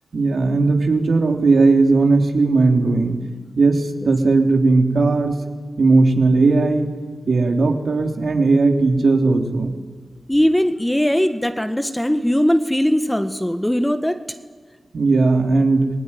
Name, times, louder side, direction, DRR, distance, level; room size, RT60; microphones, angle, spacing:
voice 1, 0.1-3.2 3.6-5.4 5.8-6.9 7.3-9.8 14.9-15.9, right 3 dB, 70° right, 2 dB, 3.5 m, -17 dB
voice 2, 10.3-14.2, equal, 10° left, 8 dB, 1.5 m, -19 dB
27.5 x 18.5 x 9.9 m, 1.5 s
cardioid pair, 65°, 0 cm